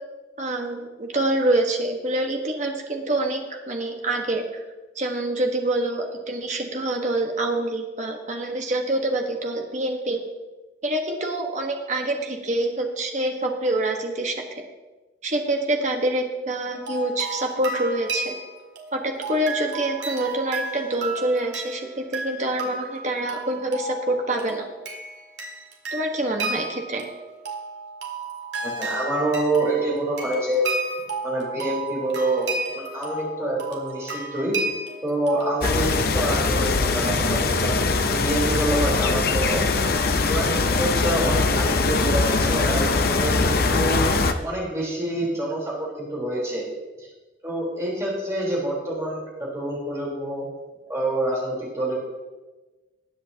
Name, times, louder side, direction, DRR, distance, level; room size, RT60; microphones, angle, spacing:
voice 1, 0.4-4.6 4.9-10.2 10.8-14.6 15.2-18.3 18.9-24.6 25.9-27.0, right 1 dB, 40° right, 2 dB, 1.3 m, -26 dB
sound 1, 16.7-35.7, right 3 dB, 70° right, 1.8 m, -33 dB
voice 2, 28.6-30.6 31.2-34.5 35.0-35.9 36.1-37.7 38.0-39.6 40.3-44.0 44.4-46.6 47.0-47.1 47.4-50.4 50.9-52.0, right 1 dB, 15° right, -5 dB, 3.7 m, -27 dB
sound 2, 35.6-44.3, left 3 dB, 50° left, 0.7 m, -22 dB
20.0 x 8.2 x 2.8 m, 1.2 s
head